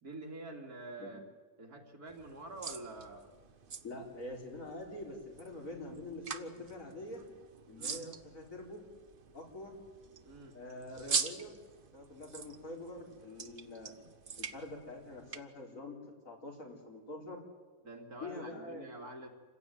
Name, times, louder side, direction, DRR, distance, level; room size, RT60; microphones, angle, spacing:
voice 1, 0.0-1.2 1.6-3.3 7.7-8.0 10.2-10.6 17.8-19.3, right 2 dB, 80° right, 2 dB, 3.4 m, -47 dB
sound 1, 2.1-15.4, right 5 dB, 40° right, 1.1 m, -44 dB
voice 2, 3.8-7.3 7.7-8.8 9.3-9.8 10.5-11.5 11.9-13.9 14.4-16.0 16.2-17.5 18.2-18.9, left 2 dB, 60° left, -1 dB, 5.1 m, -45 dB
27.5 x 15.5 x 9.4 m, 1.3 s
omnidirectional pair, 1.6 m